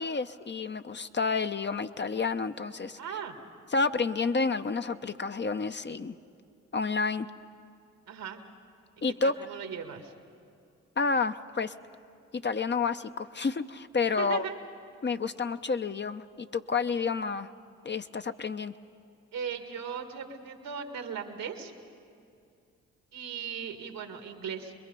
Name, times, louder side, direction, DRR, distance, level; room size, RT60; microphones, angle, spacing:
voice 1, 0.0-3.0 3.7-6.1 6.7-7.3 9.0-9.3 11.0-11.7 12.3-14.4 15.0-17.5 17.8-18.7, left 4 dB, 30° left, 9 dB, 0.8 m, -30 dB
voice 2, 3.0-3.4 8.1-8.4 9.2-10.1 14.2-14.6 19.3-21.7 23.1-24.7, right 7 dB, 80° right, 5 dB, 2.0 m, -38 dB
26.5 x 22.0 x 5.4 m, 2.5 s
hypercardioid pair, 45°, 34 cm